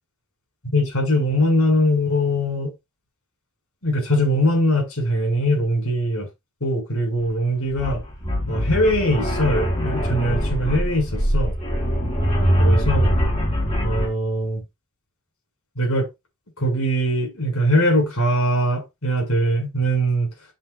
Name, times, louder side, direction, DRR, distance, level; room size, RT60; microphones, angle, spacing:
voice 1, 0.7-2.7 3.8-6.3 6.6-8.0 8.5-11.5 12.6-13.2 13.8-14.6 15.8-16.1 16.6-20.3, equal, 75° left, 6.7 m, -21 dB
sound 1, 7.2-7.3 7.7-14.1, equal, 30° left, 4.2 m, -22 dB
12.0 x 7.0 x 2.6 m
head